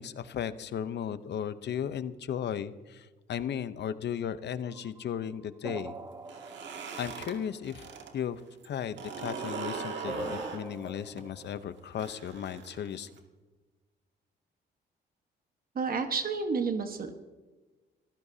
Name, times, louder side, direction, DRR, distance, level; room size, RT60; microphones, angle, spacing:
voice 1, 0.0-6.0 7.0-7.9 8.1-13.1, left 9 dB, 60° left, 13 dB, 0.8 m, -35 dB
sound 1, 4.7-8.0 10.0-11.8, right 3 dB, 15° right, 0.7 m, -44 dB
sound 2, 6.2-8.1 8.4-13.2, right 5 dB, 65° right, 2.3 m, -40 dB
voice 2, 15.7-17.1, right 5 dB, 45° right, 6 dB, 1.4 m, -30 dB
26.5 x 15.0 x 2.8 m, 1.3 s
cardioid pair, 90°, 20 cm